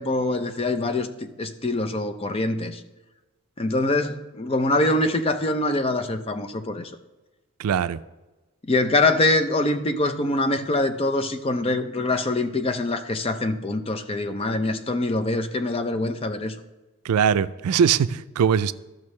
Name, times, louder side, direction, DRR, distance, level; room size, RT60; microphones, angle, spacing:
voice 1, 0.0-2.8 3.6-6.9 8.6-16.5, left 2 dB, 25° left, 9 dB, 0.4 m, -24 dB
voice 2, 7.6-8.0 17.0-18.7, right 7 dB, 90° right, 14 dB, 0.4 m, -21 dB
14.0 x 6.0 x 3.2 m, 1.1 s
head